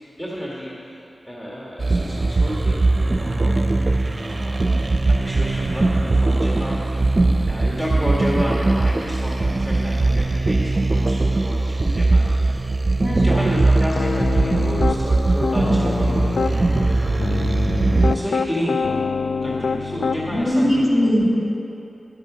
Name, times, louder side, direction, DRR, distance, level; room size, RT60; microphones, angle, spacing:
voice 1, 0.2-3.6 4.2-4.7 5.1-12.6 13.1-17.5 17.7-18.8 19.4-20.8, equal, 10° left, -6 dB, 2.0 m, -31 dB
sound 1, 1.8-18.1, right 2 dB, 40° right, 0.7 m, -20 dB
voice 2, 12.9-13.5 20.3-21.3, equal, 40° left, -6 dB, 3.3 m, -20 dB
Piano, 14.0-15.0 15.4-16.5 17.2-20.4, left 4 dB, 75° left, 0.4 m, -25 dB
11.5 x 9.1 x 6.2 m, 2.8 s
wide cardioid pair, 65°, 0 cm